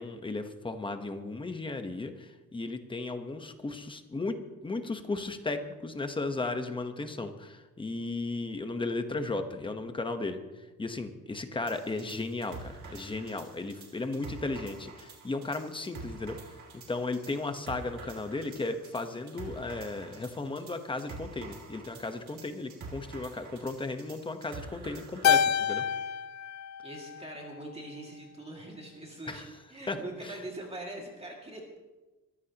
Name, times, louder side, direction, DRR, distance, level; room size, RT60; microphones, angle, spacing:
voice 1, 0.0-16.4 16.9-25.8 29.3-29.5 29.9-30.0 30.2-30.4, left 3 dB, 15° left, 7 dB, 1.0 m, -35 dB
sound 1, 11.7-25.4, right 4 dB, 60° right, 2.8 m, -47 dB
Keyboard (musical), 25.2-27.8, left 8 dB, 60° left, 0.5 m, -28 dB
voice 2, 26.8-31.8, right 1 dB, 20° right, -1 dB, 2.2 m, -43 dB
23.0 x 15.0 x 2.9 m, 1.1 s
cardioid pair, 160°, 32 cm